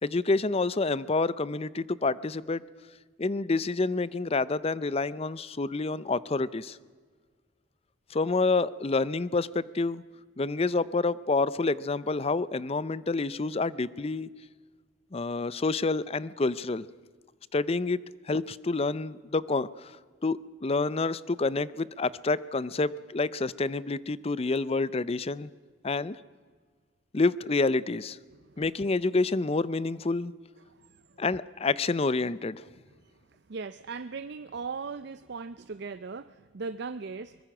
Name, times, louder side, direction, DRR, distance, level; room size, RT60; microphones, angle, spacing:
voice 1, 0.0-2.6 3.2-6.8 8.1-10.0 10.4-14.3 15.1-16.9 17.5-18.0 18.3-19.9 20.2-25.5 25.8-26.2 27.1-28.2 28.6-30.3 31.2-32.6, left 3 dB, 30° left, 19 dB, 0.5 m, -28 dB
voice 2, 33.5-37.4, right 4 dB, 55° right, 13 dB, 0.5 m, -38 dB
23.5 x 20.5 x 6.1 m, 1.5 s
head